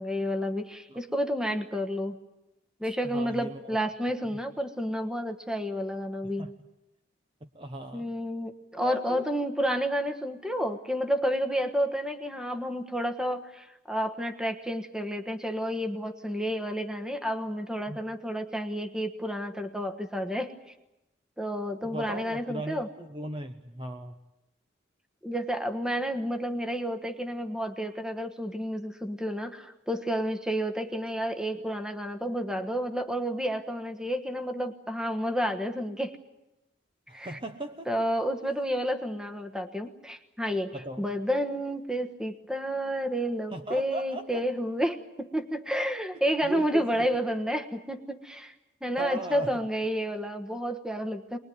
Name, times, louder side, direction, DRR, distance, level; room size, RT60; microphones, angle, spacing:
voice 1, 0.0-2.2 2.8-6.5 7.9-20.6 21.4-22.9 25.2-36.2 37.1-37.4 37.9-48.5 48.8-51.4, equal, 5° right, 6 dB, 1.3 m, -30 dB
voice 2, 3.0-3.8 4.3-4.4 6.2-6.5 7.4-8.1 8.8-9.2 17.9-18.0 21.8-24.2 37.1-37.9 40.7-41.1 43.5-44.5 46.4-47.0 49.0-49.6, right 1 dB, 25° right, 7 dB, 0.9 m, -38 dB
24.0 x 21.0 x 9.4 m, 0.93 s
head